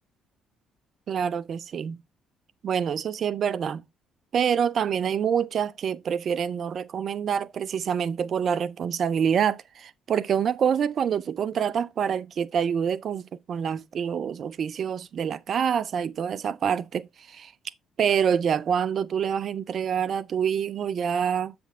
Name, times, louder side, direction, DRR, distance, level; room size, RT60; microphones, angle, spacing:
voice 1, 1.1-2.0 2.6-3.8 4.3-13.2 13.5-17.5 18.0-21.5, right 7 dB, 55° right, 0.5 m, -26 dB
7.2 x 6.1 x 3.5 m
hypercardioid pair, 55°, 0 cm